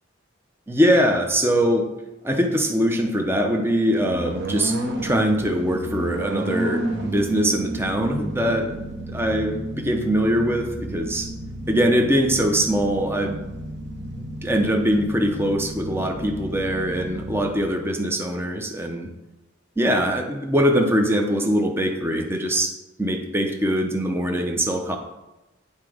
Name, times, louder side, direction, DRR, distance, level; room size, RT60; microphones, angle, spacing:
voice 1, 0.7-1.9 2.2-4.8 5.0-8.7 9.1-11.3 11.7-13.4 14.2-19.1 19.8-22.7 23.0-25.0, equal, 10° right, 3 dB, 0.7 m, -22 dB
sound 1, 4.0-17.5, right 1 dB, 60° right, 1.0 m, -31 dB
8.0 x 4.2 x 5.0 m, 0.99 s
head